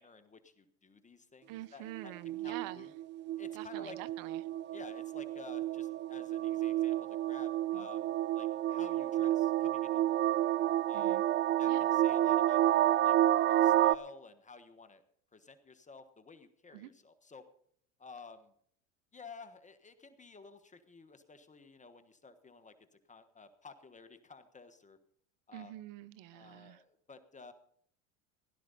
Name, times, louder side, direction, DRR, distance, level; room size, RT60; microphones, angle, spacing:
voice 1, 0.0-2.9 3.4-4.0 4.7-10.2 10.9-11.2 11.6-12.7 13.0-13.1 13.5-15.0 15.3-17.4 18.0-18.5 19.1-22.7 23.1-25.0 25.5-25.7 26.3-27.5, left 4 dB, 20° left, 1.3 m, -53 dB
voice 2, 1.5-2.9 3.5-4.4 7.7-7.9 10.9-11.2 11.7-11.9 16.7-16.9 25.5-26.8, right 15 dB, 60° right, 1.0 m, -46 dB
sound 1, 2.0-13.9, right 13 dB, 30° right, 0.4 m, -30 dB
16.5 x 12.0 x 4.1 m
supercardioid pair, 100°, 37 cm